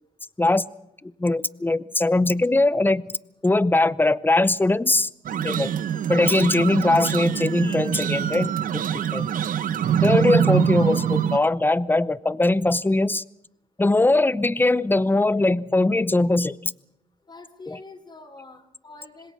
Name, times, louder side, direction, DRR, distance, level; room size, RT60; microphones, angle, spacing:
voice 1, 1.0-3.0 3.4-5.1 5.4-5.7 6.1-8.8 9.1-9.3 10.0-13.2 13.8-16.6 17.7-17.8, left 2 dB, 15° left, 18 dB, 0.8 m, -21 dB
sound 1, 5.2-11.4, right 9 dB, 70° right, 0.9 m, -24 dB
voice 2, 17.3-19.3, left 3 dB, 30° left, 3 dB, 3.3 m, -45 dB
26.0 x 20.5 x 6.3 m, 0.83 s
cardioid pair, 80°, 15 cm